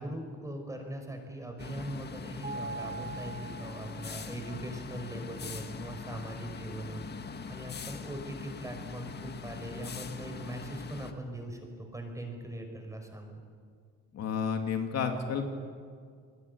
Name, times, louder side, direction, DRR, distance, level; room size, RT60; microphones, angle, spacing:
voice 1, 0.0-11.6 11.9-13.4, right 1 dB, 10° right, 4 dB, 5.4 m, -41 dB
sound 1, 1.6-11.1, left 5 dB, 35° left, 1.8 m, -42 dB
Mallet percussion, 2.4-4.4, right 4 dB, 30° right, 2.2 m, -42 dB
voice 2, 14.1-15.5, left 6 dB, 60° left, 4 dB, 2.9 m, -31 dB
28.0 x 21.0 x 8.2 m, 2.1 s
cardioid pair, 120°, 29 cm